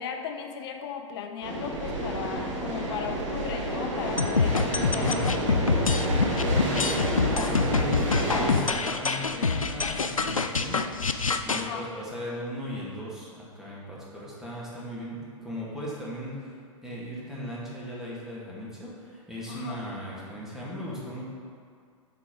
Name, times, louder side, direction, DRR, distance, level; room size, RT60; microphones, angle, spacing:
voice 1, 0.0-5.3 11.5-11.9 19.5-19.8, left 7 dB, 50° left, 6 dB, 0.7 m, -36 dB
sound 1, 1.4-8.6, right 1 dB, 60° right, 1.5 m, -30 dB
sound 2, 4.2-11.7, left 4 dB, 90° left, 0.4 m, -26 dB
voice 2, 4.7-5.2 6.5-16.5 16.8-21.3, equal, ahead, -7 dB, 1.9 m, -37 dB
6.7 x 4.8 x 5.2 m, 2.2 s
figure-of-eight pair, 95°, 17 cm